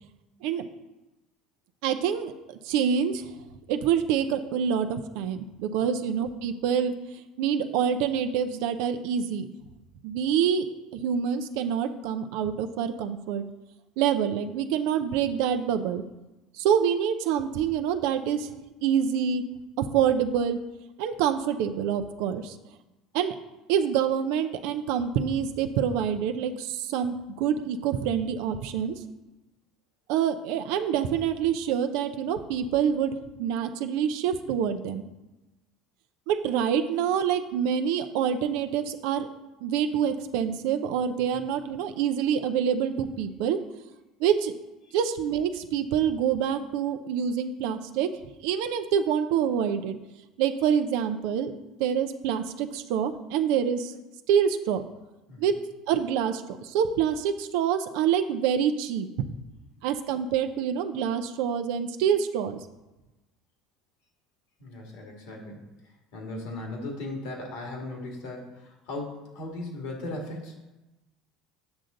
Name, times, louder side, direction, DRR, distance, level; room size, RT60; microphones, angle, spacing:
voice 1, 1.8-2.3 2.6-3.3 3.7-6.9 7.4-9.5 10.0-10.7 10.9-13.4 14.0-16.0 16.6-18.5 18.8-19.4 19.8-20.6 21.0-22.6 23.1-23.3 23.7-29.0 30.1-35.0 36.3-39.3 39.6-43.6 44.2-44.5 44.9-48.1 48.4-50.0 50.4-51.5 51.8-53.9 54.3-54.8 55.4-55.5 55.9-59.3 59.8-62.6, right 8 dB, 70° right, 8 dB, 0.6 m, -26 dB
voice 2, 64.6-65.6 66.1-70.5, left 2 dB, 75° left, 1 dB, 2.2 m, -37 dB
8.2 x 6.4 x 3.9 m, 1.0 s
hypercardioid pair, 80°, 0 cm